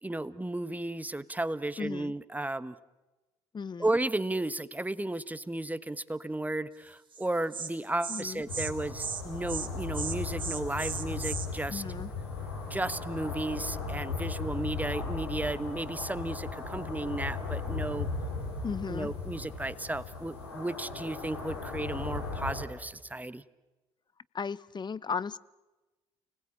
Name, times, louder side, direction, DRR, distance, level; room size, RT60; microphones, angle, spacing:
voice 1, 0.0-2.8 3.8-11.8 12.7-18.1 18.9-23.4, right 2 dB, 10° right, 15 dB, 1.3 m, -34 dB
voice 2, 1.8-2.1 3.5-4.0 8.1-8.4 11.7-12.1 18.6-19.1 24.3-25.4, left 5 dB, 35° left, 19 dB, 0.9 m, -35 dB
Insect, 7.1-7.3 7.5-7.7 8.0-8.2 8.5-8.7 9.0-9.2 9.5-9.7 9.9-11.5, right 6 dB, 40° right, 2.8 m, -36 dB
sound 1, 8.5-22.6, left 4 dB, 90° left, 3.8 m, -37 dB
29.5 x 19.5 x 8.8 m, 1.1 s
hypercardioid pair, 50°, 13 cm